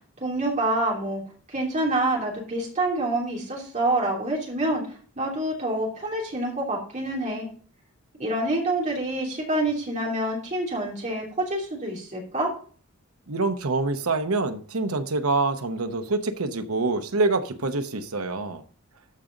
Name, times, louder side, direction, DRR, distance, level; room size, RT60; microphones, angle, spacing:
voice 1, 0.2-1.2 1.5-4.8 5.2-7.5 8.2-12.5, right 1 dB, 35° right, 3.0 m, -27 dB
voice 2, 13.3-18.6, right 3 dB, 80° right, 0.9 m, -26 dB
13.0 x 5.2 x 3.9 m
head